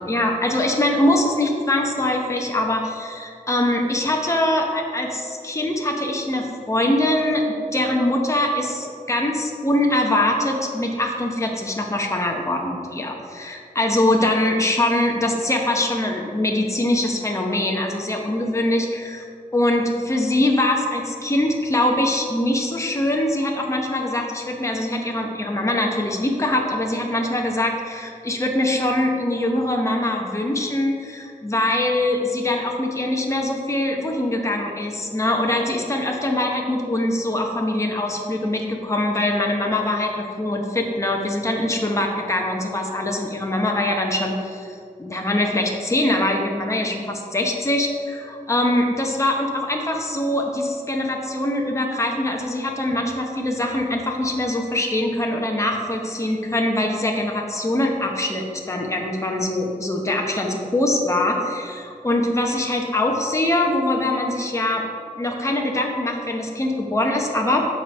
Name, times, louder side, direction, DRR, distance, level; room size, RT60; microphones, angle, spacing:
voice 1, 0.0-7.4 7.7-19.2 19.5-64.8 65.2-67.7, left 1 dB, 20° left, 1 dB, 0.9 m, -23 dB
7.5 x 5.1 x 5.5 m, 2.3 s
wide cardioid pair, 105°, 15 cm